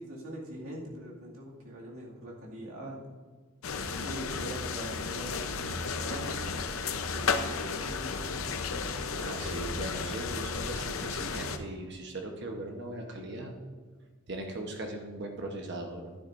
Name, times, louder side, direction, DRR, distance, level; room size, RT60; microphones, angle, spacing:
voice 1, 0.0-3.0 4.0-5.5 6.0-6.5 7.0-8.6, right 1 dB, 80° right, -3 dB, 2.2 m, -42 dB
sound 1, 3.6-11.6, left 4 dB, 75° left, 0.7 m, -33 dB
voice 2, 9.1-13.5 14.3-16.1, right 2 dB, 55° right, 2 dB, 1.1 m, -39 dB
11.5 x 10.5 x 2.6 m, 1.5 s
head